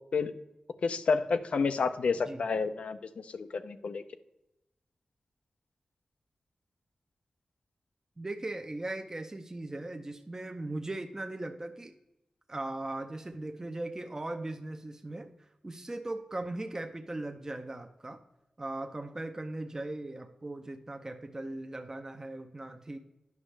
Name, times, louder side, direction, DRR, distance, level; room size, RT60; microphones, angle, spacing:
voice 1, 0.8-4.0, left 5 dB, 75° left, 10 dB, 0.5 m, -30 dB
voice 2, 8.2-11.9 12.5-15.3 15.6-18.2 18.6-23.0, right 2 dB, 25° right, 5 dB, 0.6 m, -38 dB
9.4 x 6.1 x 3.3 m, 0.91 s
wide cardioid pair, 80°, 2 cm